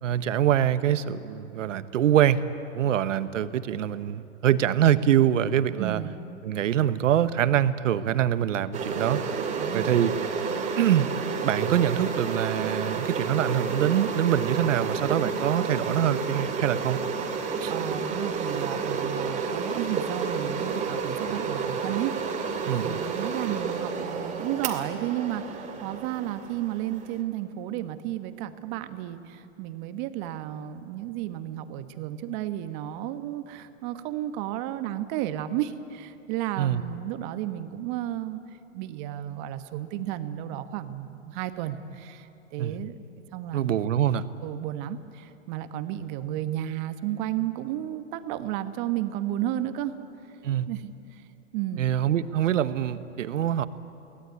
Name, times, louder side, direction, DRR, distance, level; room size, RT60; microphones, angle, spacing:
voice 1, 0.0-2.4 2.7-6.0 6.4-9.2 9.7-10.1 10.8-11.1 11.4-17.0 17.6-17.7 22.7-22.9 36.6-36.8 42.6-42.8 43.5-44.3 50.4-50.7 51.8-53.7, right 10 dB, 70° right, 13 dB, 1.2 m, -24 dB
voice 2, 5.8-6.1 9.6-10.0 17.7-22.2 22.8-38.4 38.7-43.0 43.3-43.9 44.4-49.9 50.7-51.2 51.5-51.9, right 12 dB, 35° right, 10 dB, 1.2 m, -33 dB
sound 1, 8.7-27.2, right 5 dB, 20° right, 2.4 m, -30 dB
23.0 x 18.0 x 9.4 m, 2.7 s
hypercardioid pair, 135°, 39 cm